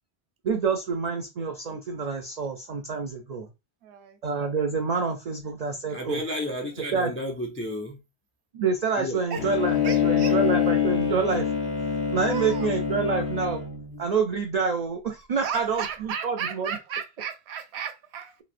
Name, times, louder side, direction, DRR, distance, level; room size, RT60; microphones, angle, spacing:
voice 1, 0.4-3.5 4.2-6.2 6.9-7.1 8.5-11.5 12.1-13.6 14.0-16.7, right 5 dB, 55° right, 0.4 m, -27 dB
voice 2, 3.8-4.2 9.3-9.5 9.8-10.4 12.3-12.7 15.4-18.4, right 7 dB, 75° right, 0.8 m, -34 dB
voice 3, 5.9-8.0 9.0-9.2, left 1 dB, 20° left, 0.3 m, -32 dB
Bowed string instrument, 9.3-14.0, left 8 dB, 65° left, 1.0 m, -25 dB
3.1 x 2.7 x 2.5 m
omnidirectional pair, 1.1 m